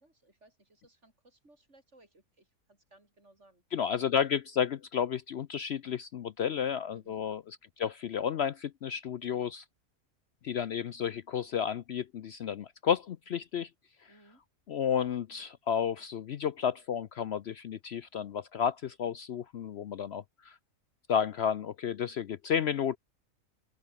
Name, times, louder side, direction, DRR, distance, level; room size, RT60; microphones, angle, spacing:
voice 1, 0.0-3.6 6.9-7.2 14.1-14.4, right 2 dB, 55° right, 6.3 m, -62 dB
voice 2, 3.7-9.6 10.4-13.7 14.7-20.5 21.1-23.0, left 8 dB, 60° left, 0.8 m, -32 dB
open air
omnidirectional pair, 1.4 m